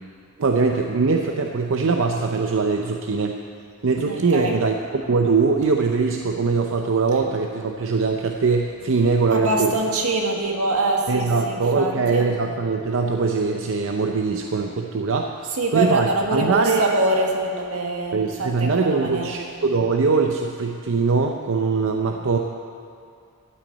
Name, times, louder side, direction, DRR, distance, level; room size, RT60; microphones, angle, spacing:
voice 1, 0.4-3.4 3.8-9.7 11.1-15.4 15.7-16.8 18.1-22.4, right 4 dB, 60° right, 3 dB, 0.6 m, -22 dB
voice 2, 4.0-4.6 9.3-12.2 15.6-19.4, right 2 dB, 85° right, 1 dB, 1.7 m, -24 dB
12.5 x 6.2 x 8.5 m, 2.4 s
head